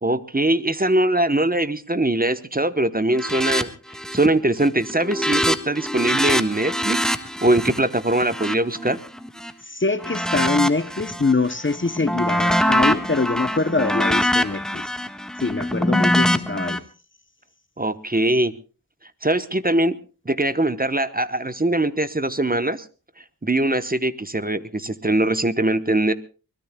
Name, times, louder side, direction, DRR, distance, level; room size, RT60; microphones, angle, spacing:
voice 1, 0.0-3.7 4.1-7.1 7.4-9.0 17.8-18.5 19.2-20.0 20.3-22.8 23.4-26.1, right 1 dB, 25° right, 1.0 m, -21 dB
sound 1, 3.2-3.6 3.9-4.4 4.7-9.5 10.0-11.3 11.7-16.8, equal, ahead, 1.5 m, -23 dB
voice 2, 9.6-14.9 15.4-16.8, left 3 dB, 35° left, 0.8 m, -24 dB
23.5 x 21.0 x 2.3 m
wide cardioid pair, 60°, 35 cm